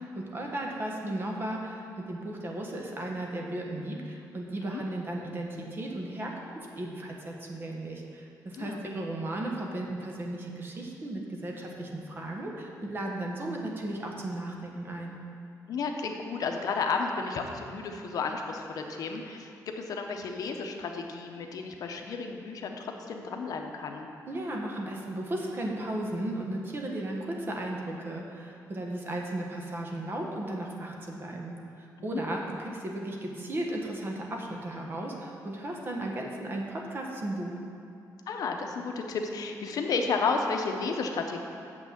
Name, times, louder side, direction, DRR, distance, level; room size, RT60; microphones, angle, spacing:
voice 1, 0.0-15.1 24.3-37.6, right 1 dB, 35° right, 0 dB, 1.2 m, -35 dB
voice 2, 8.5-9.0 15.7-24.1 32.0-32.2 38.3-41.4, left 4 dB, 65° left, 3 dB, 0.8 m, -32 dB
7.5 x 6.0 x 7.3 m, 2.6 s
wide cardioid pair, 145°, 7 cm